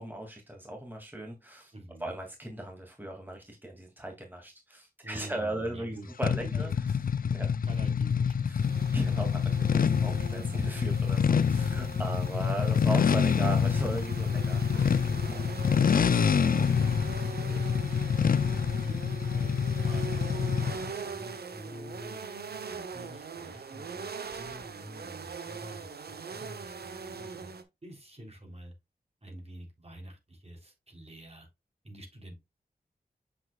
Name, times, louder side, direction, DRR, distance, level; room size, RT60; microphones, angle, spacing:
voice 1, 0.0-1.7 2.0-6.7 7.3-7.5 8.9-15.4 19.3-19.6, right 1 dB, 10° right, 2.6 m, -38 dB
voice 2, 1.7-2.1 5.0-6.1 6.4-7.0 7.6-8.9 11.4-11.8 15.1-19.1 19.8-22.2 22.7-26.7 27.1-27.5 27.8-28.7 29.2-31.5 31.8-32.3, right 1 dB, 40° right, 3.3 m, -48 dB
sound 1, 6.2-20.9, left 7 dB, 60° left, 0.5 m, -27 dB
sound 2, 8.6-27.6, right 5 dB, 85° right, 1.0 m, -41 dB
7.4 x 6.0 x 2.4 m
cardioid pair, 45°, 16 cm